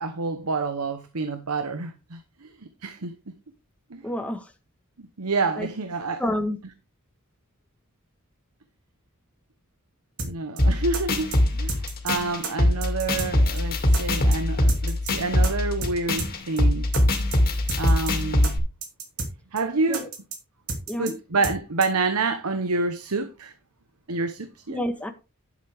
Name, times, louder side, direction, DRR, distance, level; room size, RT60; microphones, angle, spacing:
voice 1, 0.0-2.5 2.8-3.1 3.9-4.0 5.0-6.2 10.2-16.9 17.8-18.6 19.5-20.1 21.0-23.5 24.1-24.8, right 3 dB, 85° right, 1.0 m, -28 dB
voice 2, 4.0-4.5 5.6-5.7 6.2-6.6 19.9-20.1 20.9-21.2 24.7-25.1, left 1 dB, 5° left, 1.4 m, -28 dB
sound 1, 10.2-10.3 10.6-10.7 10.9-11.4 11.7-12.1 12.4-12.5 12.8-13.3 13.6-13.7 13.9-14.4 14.7-15.1 15.4-15.5 15.8-15.9 16.2-16.3 16.6-16.7 16.9-17.4 17.7-18.1 18.4-18.5 18.8-19.3 19.6-19.7 19.9-20.4 20.7-21.1 21.4-21.6 21.8-21.9, right 4 dB, 70° right, 2.8 m, -31 dB
sound 2, 10.6-18.6, left 1 dB, 45° left, 2.5 m, -23 dB
11.5 x 7.7 x 3.5 m
head